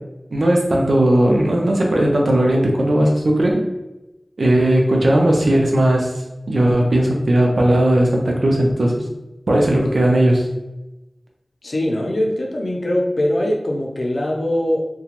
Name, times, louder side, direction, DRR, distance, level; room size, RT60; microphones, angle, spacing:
voice 1, 0.3-3.6 4.4-6.1 6.5-9.0 9.5-10.5, right 1 dB, 90° right, 0 dB, 0.5 m, -17 dB
voice 2, 11.6-14.9, left 1 dB, 80° left, -1 dB, 0.5 m, -21 dB
2.9 x 2.2 x 2.9 m, 1.0 s
wide cardioid pair, 50°, 0 cm